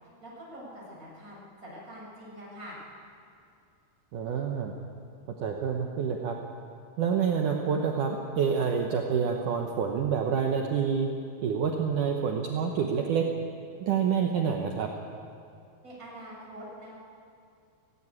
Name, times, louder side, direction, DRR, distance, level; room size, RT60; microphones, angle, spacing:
voice 1, 0.2-2.8 15.8-16.9, equal, 15° right, -6 dB, 7.3 m, -45 dB
voice 2, 4.1-4.7 5.4-6.4 7.0-11.1 11.4-13.3 13.8-14.9, right 6 dB, 90° right, 1 dB, 1.8 m, -27 dB
17.0 x 16.5 x 9.7 m, 2.5 s
omnidirectional pair, 5.4 m